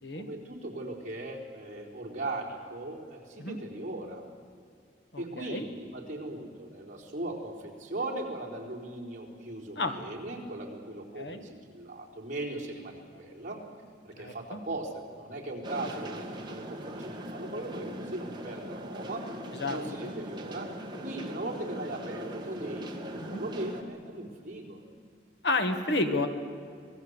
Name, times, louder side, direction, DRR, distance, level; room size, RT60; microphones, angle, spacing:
voice 1, 0.1-4.3 5.2-13.6 14.0-19.3 19.7-20.7 21.0-24.8, right 2 dB, 45° right, -2 dB, 4.2 m, -38 dB
voice 2, 5.1-5.6 9.8-9.9 11.2-11.5 14.2-14.6 19.5-20.1 23.2-23.4 25.4-26.3, left 2 dB, 65° left, 6 dB, 2.0 m, -31 dB
sound 1, 15.6-23.8, equal, 25° right, 2.1 m, -40 dB
26.5 x 19.0 x 8.2 m, 2.2 s
head